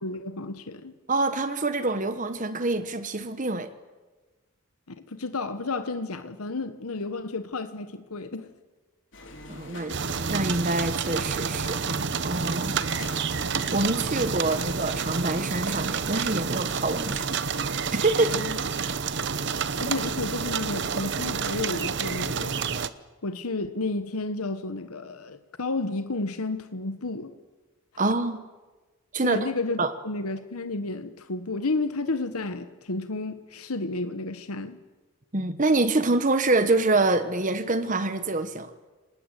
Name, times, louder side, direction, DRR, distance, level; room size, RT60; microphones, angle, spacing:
voice 1, 0.0-0.9 4.9-8.5 18.3-18.6 19.8-22.6 23.2-27.3 29.2-34.8, left 3 dB, 85° left, 1.3 m, -31 dB
voice 2, 1.1-3.7 9.5-9.9 10.3-11.8 12.2-12.8 13.3-17.4 17.9-18.4 18.7-18.9 28.0-28.4 29.1-29.5 29.8-29.9 35.3-38.7, right 2 dB, 35° right, 1.2 m, -26 dB
sound 1, 9.1-15.2, left 2 dB, 55° left, 4.1 m, -45 dB
sound 2, 9.9-22.9, right 5 dB, 55° right, 0.9 m, -29 dB
28.0 x 19.5 x 8.2 m
head